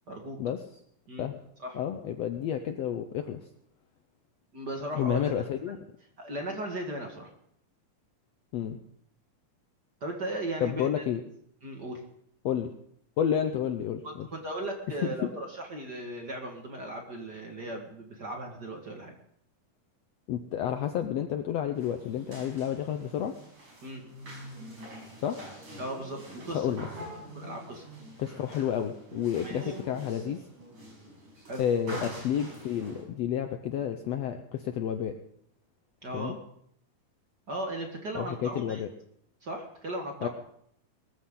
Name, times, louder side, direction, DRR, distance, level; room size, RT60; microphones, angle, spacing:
voice 1, 0.1-0.4 1.1-1.3 1.6-1.8 4.5-5.5 6.2-7.3 10.0-11.1 11.6-12.0 14.0-19.2 23.8-24.0 25.8-26.7 27.3-27.9 29.4-29.7 31.5-31.6 36.0-36.4 37.5-38.9 39.4-40.3, right 1 dB, 40° right, 2 dB, 1.9 m, -37 dB
voice 2, 1.7-3.4 4.9-5.8 8.5-8.8 10.6-11.2 12.4-12.7 13.2-14.3 20.3-23.3 25.2-25.5 26.5-27.1 28.2-30.4 31.6-35.1 36.1-36.4 38.1-38.9 40.2-40.3, left 9 dB, 70° left, 7 dB, 1.6 m, -30 dB
sound 1, 21.7-33.0, right 1 dB, 65° right, 7.3 m, -45 dB
21.0 x 14.5 x 3.8 m, 0.69 s
omnidirectional pair, 3.7 m